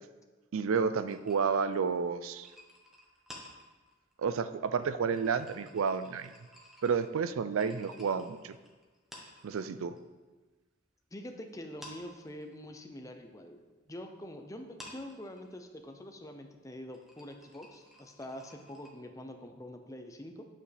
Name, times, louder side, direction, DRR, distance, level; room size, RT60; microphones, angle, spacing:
voice 1, 0.5-2.5 4.2-6.3 6.8-8.5 9.4-9.9, right 5 dB, 90° right, 13 dB, 0.4 m, -31 dB
sound 1, 1.0-10.0 10.3-11.3 11.6-18.9, left 1 dB, ahead, 1.1 m, -54 dB
voice 2, 11.1-20.5, left 1 dB, 15° left, 4 dB, 0.6 m, -45 dB
8.9 x 7.2 x 3.4 m, 1.2 s
head